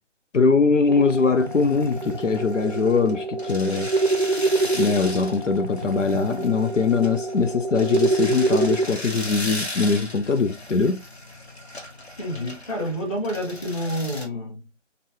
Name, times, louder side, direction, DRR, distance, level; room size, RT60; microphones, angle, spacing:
voice 1, 0.3-3.9 4.8-11.0, left 4 dB, 80° left, 0.6 m, -22 dB
sound 1, 0.9-14.3, left 1 dB, 60° left, 1.1 m, -38 dB
sound 2, 0.9-8.9, right 2 dB, 40° right, 0.5 m, -26 dB
voice 2, 12.2-14.6, equal, 25° left, 1.6 m, -29 dB
3.9 x 2.2 x 3.0 m
figure-of-eight pair, 160°, 36 cm